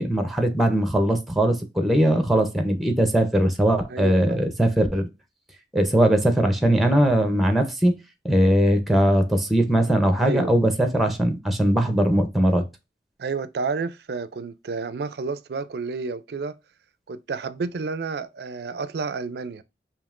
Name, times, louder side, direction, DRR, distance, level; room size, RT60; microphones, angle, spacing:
voice 1, 0.0-5.1 5.7-7.9 8.2-12.6, right 1 dB, ahead, 0.6 m, -20 dB
voice 2, 3.9-4.5 10.2-10.5 13.2-16.6 17.1-19.6, right 4 dB, 60° right, 0.4 m, -30 dB
5.2 x 2.8 x 2.4 m
head